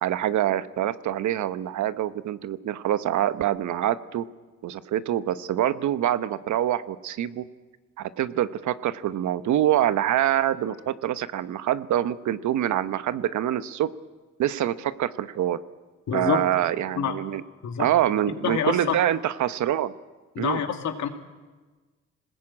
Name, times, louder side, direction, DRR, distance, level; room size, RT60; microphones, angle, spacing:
voice 1, 0.0-4.2 4.6-7.4 8.0-13.9 14.4-15.6 16.1-17.4 17.8-19.9 20.4-20.6, right 11 dB, 70° right, 13 dB, 1.0 m, -25 dB
voice 2, 16.1-16.4 17.0-17.1 17.6-17.9 18.4-19.0 20.3-21.1, left 8 dB, 70° left, 5 dB, 2.6 m, -26 dB
25.5 x 20.0 x 8.7 m, 1.3 s
cardioid pair, 90°, 30 cm